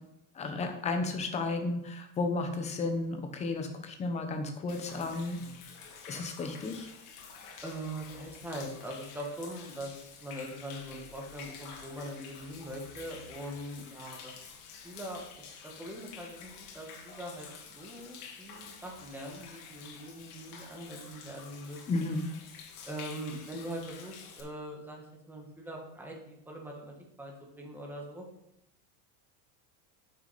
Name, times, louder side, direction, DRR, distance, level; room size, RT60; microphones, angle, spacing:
voice 1, 0.3-5.4 6.1-6.9 21.9-22.2, left 3 dB, 15° left, 6 dB, 0.8 m, -33 dB
Human voice / Rain / Stream, 4.7-24.4, left 6 dB, 85° left, 2.3 m, -49 dB
voice 2, 7.6-14.5 14.8-22.1 22.8-28.2, right 1 dB, 5° right, -1 dB, 1.4 m, -42 dB
10.0 x 6.6 x 4.1 m, 0.81 s
supercardioid pair, 170°, 44 cm